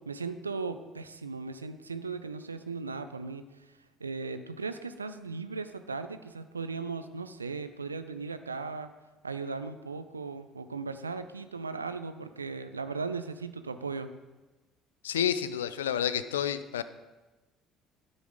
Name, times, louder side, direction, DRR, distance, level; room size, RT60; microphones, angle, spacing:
voice 1, 0.1-3.4 4.0-8.9 9.2-14.1, right 4 dB, 85° right, 10 dB, 0.4 m, -37 dB
voice 2, 15.0-16.8, left 9 dB, 80° left, 13 dB, 0.3 m, -29 dB
12.0 x 4.1 x 5.1 m, 1.2 s
figure-of-eight pair, 55°, 0 cm